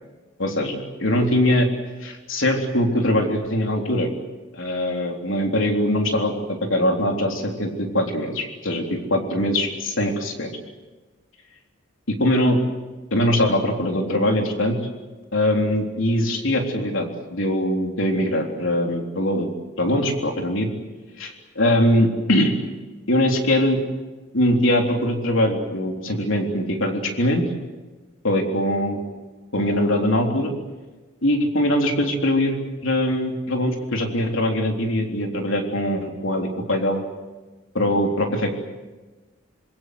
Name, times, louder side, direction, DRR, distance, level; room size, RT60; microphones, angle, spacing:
voice 1, 0.4-1.7 2.0-4.1 4.5-10.5 12.2-12.6 13.1-14.8 15.3-19.5 19.8-20.7 21.2-22.5 23.1-23.8 24.3-27.4 28.2-29.0 29.5-30.5 31.2-32.6 32.8-37.0 37.7-38.5, left 1 dB, 70° left, 2 dB, 3.7 m, -22 dB
26.0 x 22.5 x 7.9 m, 1.2 s
head